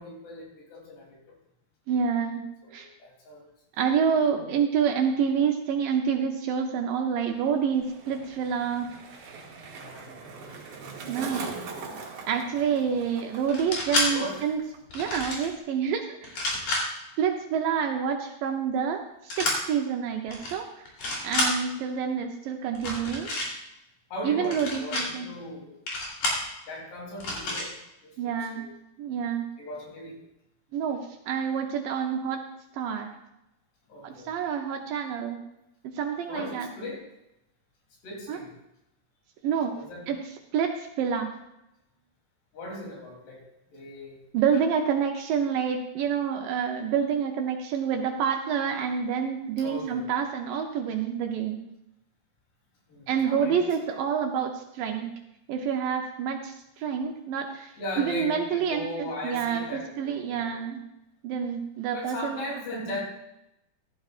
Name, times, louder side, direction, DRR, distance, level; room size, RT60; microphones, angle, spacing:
voice 1, 0.0-1.4 2.6-3.4 4.3-4.5 9.8-10.7 14.1-14.4 24.1-25.8 26.6-27.7 28.0-28.7 29.6-30.2 33.9-34.3 36.3-37.0 38.0-38.5 39.7-40.1 42.5-44.2 49.6-50.0 52.9-54.0 57.8-60.5 61.9-63.0, left 1 dB, 90° left, -2 dB, 5.3 m, -38 dB
voice 2, 1.9-2.4 2.7-2.9 3.8-8.9 11.1-11.5 12.2-14.6 14.9-16.4 17.2-20.9 21.2-23.3 24.2-25.3 28.2-28.6 29.0-29.4 30.7-32.4 32.7-33.1 34.0-35.4 35.9-36.7 38.3-38.4 39.4-39.7 40.1-40.2 40.5-41.3 44.3-51.6 53.1-55.1 55.5-60.8 61.2-62.4 62.7-63.0, right 7 dB, 75° right, 3 dB, 2.1 m, -28 dB
Skateboard, 7.2-14.8 15.0-15.5, right 4 dB, 55° right, 2.8 m, -42 dB
sound 1, 13.5-14.1 14.9-15.5 16.2-16.8 19.3-19.6 20.3-20.5 20.9-21.5 22.7-23.5 24.4-25.0 25.9-26.4 27.2-27.7, left 2 dB, 50° left, 4.2 m, -28 dB
15.5 x 12.5 x 2.5 m, 0.87 s
omnidirectional pair, 4.6 m